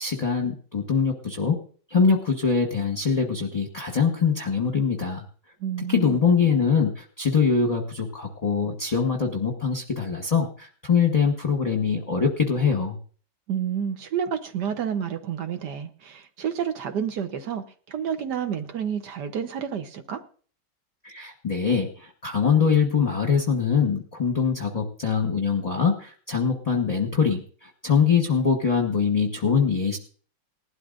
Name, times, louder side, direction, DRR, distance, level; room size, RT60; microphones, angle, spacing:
voice 1, 0.0-1.6 1.9-5.2 5.9-13.0 21.0-30.0, left 6 dB, 25° left, 1.0 m, -23 dB
voice 2, 5.6-6.2 13.5-20.2, right 8 dB, 65° right, 1.4 m, -30 dB
19.5 x 12.0 x 2.5 m
omnidirectional pair, 2.1 m